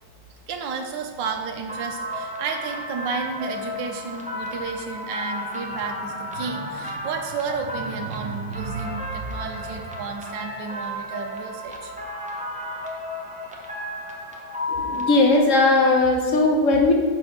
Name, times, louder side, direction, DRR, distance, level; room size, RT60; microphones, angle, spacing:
voice 1, 0.5-11.9, right 5 dB, 75° right, 3 dB, 1.5 m, -31 dB
sound 1, 1.7-15.4, left 1 dB, 10° right, 0.3 m, -33 dB
voice 2, 14.7-16.9, left 2 dB, 50° left, 2 dB, 1.1 m, -18 dB
6.0 x 5.4 x 6.4 m, 1.5 s
omnidirectional pair, 2.0 m